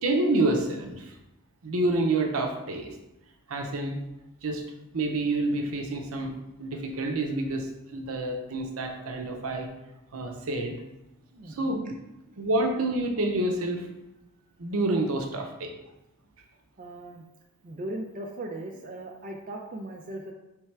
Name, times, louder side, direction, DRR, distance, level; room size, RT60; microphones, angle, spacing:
voice 1, 0.0-1.2 1.6-2.9 3.5-4.0 4.4-4.6 4.9-9.7 10.1-10.7 11.5-11.8 12.4-13.9 14.6-15.8, right 2 dB, 80° right, 3 dB, 0.7 m, -28 dB
voice 2, 11.3-11.7 16.8-17.2 17.6-20.3, right 1 dB, 40° right, 1 dB, 0.4 m, -38 dB
3.3 x 3.3 x 4.5 m, 0.93 s
head